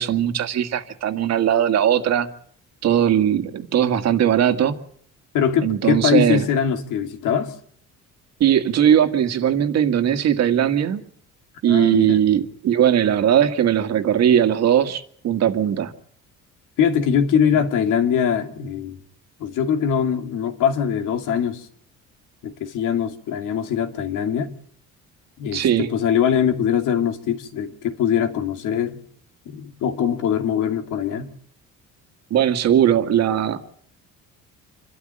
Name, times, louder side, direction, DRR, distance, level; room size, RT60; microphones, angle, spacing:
voice 1, 0.0-2.3 2.8-4.8 5.6-6.4 8.4-11.0 11.6-15.9 25.5-25.9 32.3-33.6, right 10 dB, 55° right, 1.9 m, -19 dB
voice 2, 5.3-7.5 11.7-12.2 16.8-19.0 19.4-21.7 22.4-24.5 25.4-29.0 29.5-31.3, left 8 dB, 70° left, 2.6 m, -22 dB
27.5 x 13.0 x 9.0 m
cardioid pair, 160°, 32 cm